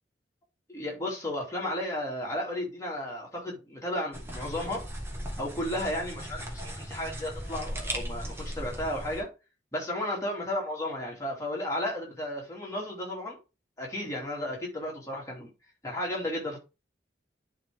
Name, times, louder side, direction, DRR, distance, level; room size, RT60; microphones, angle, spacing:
voice 1, 0.7-4.9 5.4-9.3 9.7-13.4 13.8-15.5 15.8-16.6, left 1 dB, 15° left, 2.8 m, -33 dB
sound 1, 4.1-9.2, right 1 dB, 15° right, 1.6 m, -37 dB
10.5 x 3.8 x 3.6 m
head